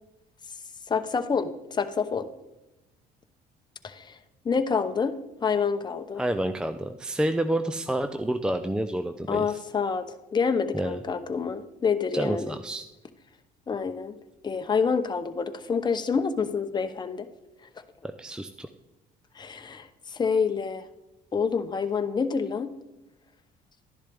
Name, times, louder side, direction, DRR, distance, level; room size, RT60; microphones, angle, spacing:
voice 1, 0.9-2.3 3.8-4.2 4.4-5.2 5.4-6.2 9.3-12.6 13.7-14.1 14.4-17.3 19.4-20.8 21.3-22.7, left 5 dB, 25° left, 7 dB, 0.8 m, -27 dB
voice 2, 6.2-9.6 10.7-11.0 12.1-12.8 18.2-18.7, right 1 dB, 5° right, 8 dB, 0.5 m, -29 dB
12.0 x 11.0 x 3.5 m, 0.96 s
cardioid pair, 110°, 17 cm